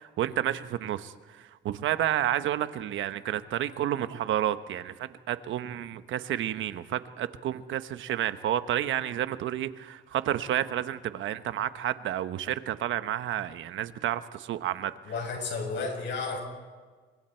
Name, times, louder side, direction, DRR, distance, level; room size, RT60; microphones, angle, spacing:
voice 1, 0.0-14.9, right 11 dB, 80° right, 11 dB, 1.1 m, -30 dB
voice 2, 15.0-16.4, left 4 dB, 65° left, 2 dB, 7.3 m, -32 dB
29.5 x 24.5 x 4.5 m, 1.4 s
cardioid pair, 90°, 20 cm